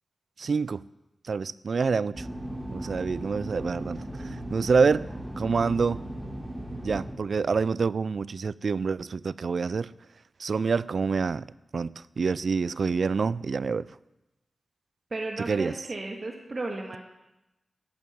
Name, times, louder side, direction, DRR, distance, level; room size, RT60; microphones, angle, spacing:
voice 1, 0.4-0.8 1.2-2.3 2.7-5.1 5.4-6.0 6.8-9.9 10.4-11.5 11.7-13.9 15.4-15.7, right 5 dB, 70° right, 20 dB, 0.4 m, -27 dB
sound 1, 2.1-7.1, right 1 dB, 5° right, 3.5 m, -37 dB
voice 2, 15.1-17.0, right 2 dB, 45° right, 1 dB, 2.1 m, -34 dB
11.5 x 9.3 x 9.2 m, 0.94 s
cardioid pair, 70°, 0 cm